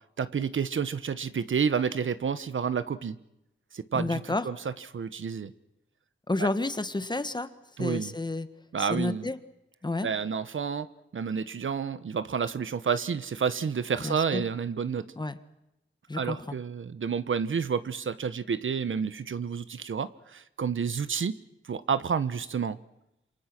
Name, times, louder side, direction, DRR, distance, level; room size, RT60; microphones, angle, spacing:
voice 1, 0.2-3.2 3.7-5.5 6.4-6.5 7.8-8.1 8.7-9.3 10.0-10.9 11.1-15.1 16.1-21.4 21.6-22.8, right 6 dB, 70° right, 14 dB, 1.2 m, -30 dB
voice 2, 3.9-4.5 6.3-7.5 7.8-8.5 8.8-9.4 9.8-10.1 14.0-14.4 15.2-15.4 16.1-16.5, left 2 dB, 20° left, 12 dB, 1.4 m, -30 dB
27.5 x 27.5 x 6.1 m, 0.86 s
wide cardioid pair, 140°, 21 cm